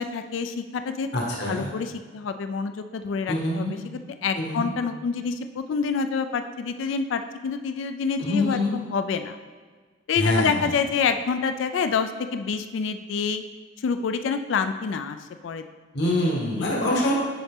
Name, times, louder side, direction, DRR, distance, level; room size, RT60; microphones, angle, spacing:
voice 1, 0.0-1.1 1.4-9.4 10.1-13.4 13.8-15.2 15.4-15.6 16.6-16.9, left 5 dB, 90° left, 9 dB, 0.4 m, -27 dB
voice 2, 1.1-1.7 3.3-3.7 4.3-4.7 8.2-8.7 10.2-10.7 15.9-17.1, left 1 dB, 60° left, -2 dB, 1.2 m, -25 dB
10.5 x 4.1 x 3.6 m, 1.5 s
head